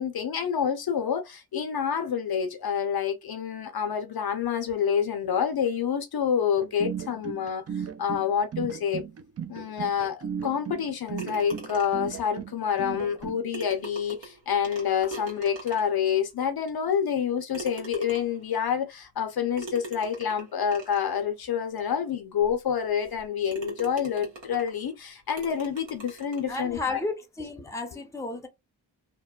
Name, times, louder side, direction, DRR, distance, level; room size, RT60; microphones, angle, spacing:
voice 1, 0.0-9.0 9.5-27.0, left 8 dB, 55° left, 0.6 m, -28 dB
sound 1, 6.6-13.4, right 8 dB, 35° right, 0.4 m, -36 dB
sound 2, 11.2-12.1 13.2-13.3 13.5-16.1 16.7-16.8 17.5-18.5 19.6-21.1 21.8-21.9 22.4-22.5 23.0-23.2 23.5-24.8 25.4-26.5, right 2 dB, 75° right, 1.4 m, -41 dB
voice 2, 26.5-28.5, left 3 dB, 5° left, 0.6 m, -33 dB
2.8 x 2.1 x 2.3 m
cardioid pair, 70°, 45 cm